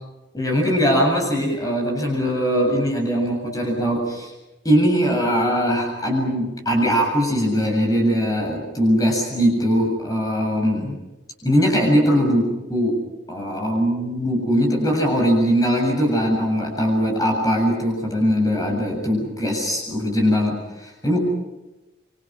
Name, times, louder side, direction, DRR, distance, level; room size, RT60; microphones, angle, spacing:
voice 1, 0.3-4.3 4.6-11.0 11.4-12.9 13.3-21.2, equal, 20° left, 0 dB, 7.7 m, -21 dB
27.5 x 26.0 x 6.4 m, 1.1 s
head